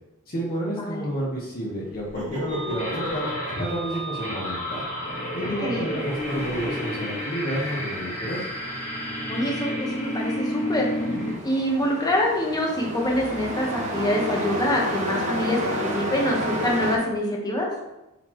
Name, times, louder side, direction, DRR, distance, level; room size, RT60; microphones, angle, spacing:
voice 1, 0.3-3.3 3.6-4.8 5.3-8.4, equal, 40° left, -5 dB, 1.3 m, -30 dB
Laughter, 1.9-6.6, right 1 dB, 75° right, 2.2 m, -38 dB
sound 1, 2.5-11.4, equal, 80° left, 2.3 m, -31 dB
voice 2, 5.4-6.0 9.3-10.9 11.4-17.7, left 1 dB, 20° left, -2 dB, 1.3 m, -25 dB
Truck, 5.9-17.0, equal, 30° right, 1.2 m, -32 dB
7.9 x 4.3 x 3.1 m, 0.95 s
head